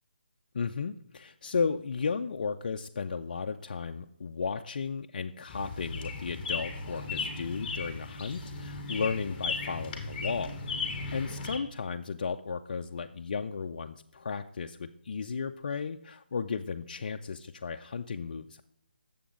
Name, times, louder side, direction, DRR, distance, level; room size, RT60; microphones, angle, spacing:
voice 1, 0.5-18.6, left 5 dB, 50° left, 5 dB, 0.4 m, -34 dB
sound 1, 5.5-11.6, left 4 dB, 15° left, 1.2 m, -36 dB
8.2 x 7.0 x 3.8 m, 0.72 s
figure-of-eight pair, 165°, 6 cm